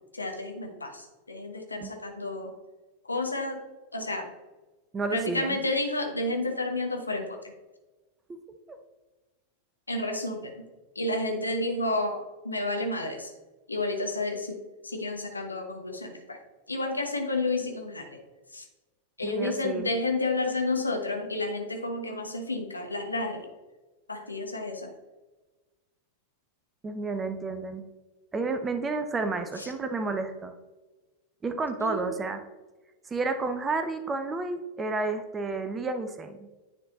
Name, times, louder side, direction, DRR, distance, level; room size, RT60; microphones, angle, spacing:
voice 1, 0.1-2.5 3.0-4.3 5.1-7.4 9.9-10.6 10.9-13.3 13.7-16.4 16.7-18.2 18.5-18.6 19.2-23.5 24.1-24.9 29.6-29.7 31.8-32.1, left 2 dB, 80° left, 3 dB, 1.1 m, -31 dB
voice 2, 4.9-5.6 8.3-8.4 8.7-8.8 19.2-19.9 26.8-27.8 28.3-30.5 31.4-32.4 33.1-36.5, right 3 dB, 20° right, 8 dB, 0.7 m, -31 dB
9.9 x 4.1 x 3.9 m, 1.2 s
figure-of-eight pair, 90°, 0 cm